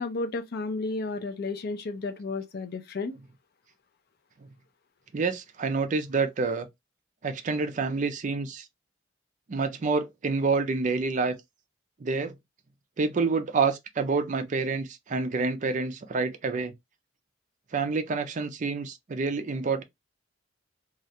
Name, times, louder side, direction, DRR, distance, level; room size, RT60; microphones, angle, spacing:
voice 1, 0.0-3.1, left 3 dB, 55° left, 0.4 m, -32 dB
voice 2, 5.1-6.7 7.2-8.6 9.5-11.4 12.0-12.4 13.0-16.7 17.7-19.8, right 4 dB, 40° right, 0.4 m, -28 dB
2.4 x 2.1 x 2.7 m
head